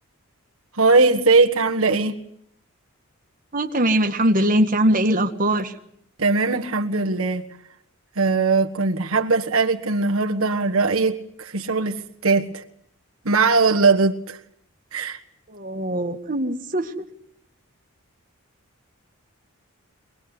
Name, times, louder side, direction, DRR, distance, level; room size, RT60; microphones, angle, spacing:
voice 1, 0.8-2.2 6.2-7.4 8.2-12.6 13.2-14.4 14.9-15.2, right 3 dB, 80° right, 1.5 m, -20 dB
voice 2, 3.5-5.8 15.5-17.1, right 1 dB, 40° right, 1.9 m, -21 dB
23.5 x 19.5 x 9.8 m
head